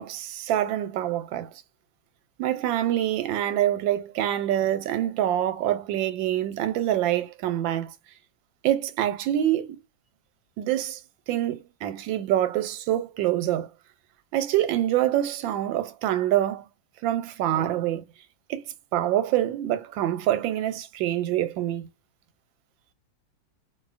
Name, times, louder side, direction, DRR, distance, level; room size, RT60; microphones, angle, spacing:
voice 1, 0.0-1.5 2.4-7.9 8.6-9.8 10.6-11.0 11.3-13.7 14.3-16.7 17.0-18.0 18.5-18.6 18.9-21.9, right 12 dB, 85° right, 1.3 m, -25 dB
2.7 x 2.6 x 2.4 m
omnidirectional pair, 2.0 m